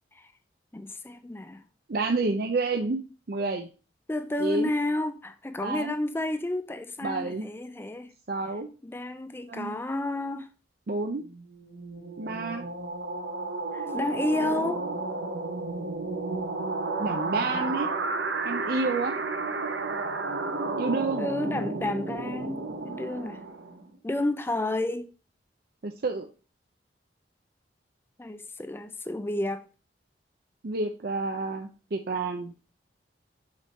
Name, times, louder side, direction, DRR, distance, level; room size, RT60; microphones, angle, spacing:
voice 1, 0.7-1.6 4.1-8.1 8.8-10.5 13.7-14.9 21.2-23.4 24.0-25.1 28.2-29.6, left 2 dB, 15° left, 0.4 m, -31 dB
voice 2, 1.9-3.0 3.3-3.7 4.4-4.7 5.6-6.0 7.0-7.5 8.3-8.7 9.5-9.7 10.9-11.2 12.2-12.7 14.3-14.7 17.0-17.9 18.4-19.2 20.8-21.3 25.8-26.3 30.6-32.5, right 3 dB, 55° right, 0.5 m, -29 dB
sound 1, 11.3-23.9, right 3 dB, 85° right, 0.9 m, -32 dB
6.4 x 3.5 x 4.2 m
head